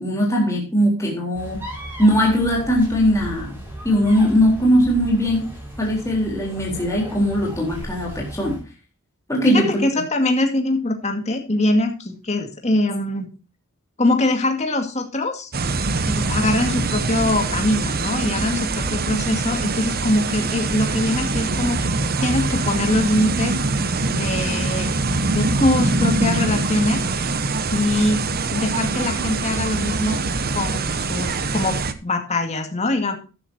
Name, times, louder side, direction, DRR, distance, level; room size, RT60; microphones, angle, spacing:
voice 1, 0.0-1.7 2.0-3.5 3.8-5.5 5.8-8.6 9.3-9.8, equal, 15° left, -2 dB, 3.9 m, -19 dB
sound 1, 1.3-8.6, equal, 10° right, 6.9 m, -36 dB
voice 2, 9.4-13.3 14.0-15.5 16.1-21.9 22.2-23.5 24.1-24.9 25.3-27.0 27.7-28.2 28.5-30.2 30.5-33.2, left 1 dB, 30° left, 4 dB, 2.3 m, -22 dB
sound 2, 15.5-31.9, right 3 dB, 45° right, 1.0 m, -23 dB
13.5 x 10.5 x 2.9 m, 0.33 s
head